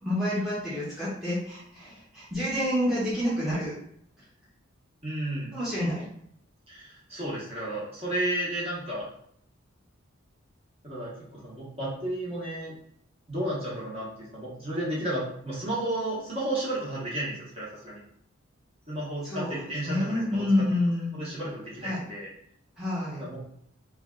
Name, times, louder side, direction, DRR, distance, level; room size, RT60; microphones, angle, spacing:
voice 1, 0.0-3.7 5.5-6.1 19.2-21.1 21.8-22.0 22.8-23.2, left 1 dB, ahead, -10 dB, 0.9 m, -28 dB
voice 2, 5.0-5.5 6.7-9.1 10.8-12.8 13.3-14.1 14.3-18.0 18.9-20.4 21.1-22.3 23.1-23.4, right 1 dB, 30° right, -7 dB, 1.2 m, -32 dB
3.4 x 2.4 x 3.7 m, 0.69 s
head